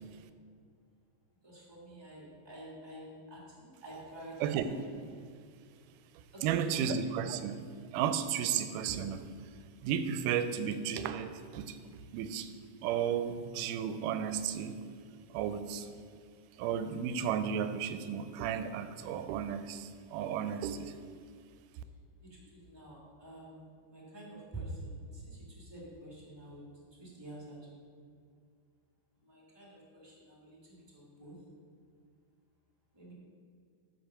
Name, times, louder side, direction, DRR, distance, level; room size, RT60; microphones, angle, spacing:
voice 1, 1.4-5.0 6.3-6.9 22.2-26.6 26.9-27.8 29.2-31.4 32.9-33.1, right 1 dB, 15° right, -4 dB, 1.0 m, -48 dB
voice 2, 6.2-7.6 7.9-9.3 9.8-11.8 12.1-12.5 12.8-14.8 15.3-15.9 16.6-20.9, right 8 dB, 85° right, 10 dB, 2.1 m, -33 dB
8.9 x 5.2 x 5.8 m, 2.2 s
omnidirectional pair, 3.7 m